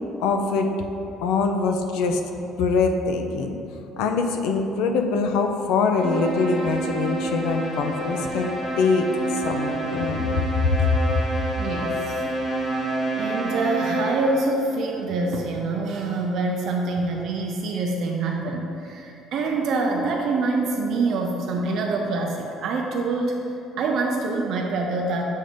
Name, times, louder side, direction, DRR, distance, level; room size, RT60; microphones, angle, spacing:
voice 1, 0.2-0.8 1.2-2.2 2.6-3.6 4.0-9.1 9.3-10.3 10.6-10.8, left 4 dB, 80° left, 5 dB, 0.5 m, -23 dB
sound 1, 6.0-14.5, right 1 dB, 15° left, 0.8 m, -28 dB
voice 2, 11.6-12.2 12.5-12.8 13.1-23.5 23.8-25.2, right 3 dB, 50° right, 1 dB, 0.4 m, -25 dB
7.2 x 2.6 x 5.0 m, 2.9 s
cardioid pair, 170°, 0 cm